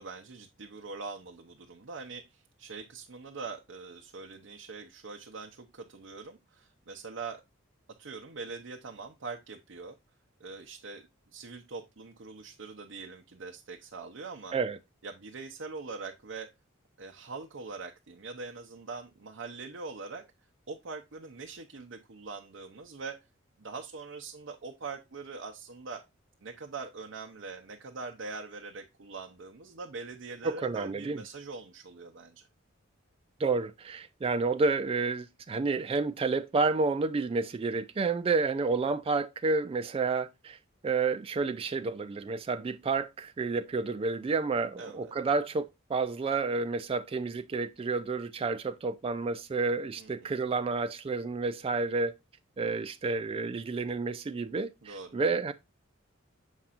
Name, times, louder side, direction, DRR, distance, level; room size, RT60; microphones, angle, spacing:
voice 1, 0.0-7.4 8.0-10.0 10.4-11.1 11.3-14.6 15.0-16.5 17.0-20.2 20.7-23.2 23.6-26.0 26.4-32.5 44.8-45.1 50.0-50.3 54.8-55.2, right 4 dB, 65° right, 0.7 m, -43 dB
voice 2, 30.4-31.2 33.4-40.6 40.8-52.1 52.6-55.5, right 4 dB, 30° right, 0.3 m, -30 dB
7.1 x 5.6 x 2.5 m
head